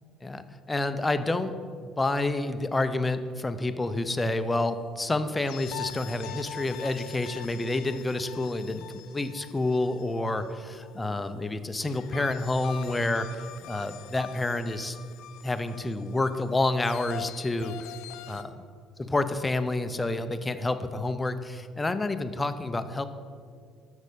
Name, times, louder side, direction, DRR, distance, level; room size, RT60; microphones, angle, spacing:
voice 1, 0.2-1.5 2.0-8.8 9.1-13.3 13.6-15.0 15.4-17.7 18.3-18.6 19.0-23.1, left 2 dB, 15° left, 10 dB, 0.4 m, -29 dB
sound 1, 5.4-11.0 11.8-18.4, left 12 dB, 85° left, 0.5 m, -44 dB
7.3 x 6.2 x 6.7 m, 2.2 s
cardioid pair, 140°, 0 cm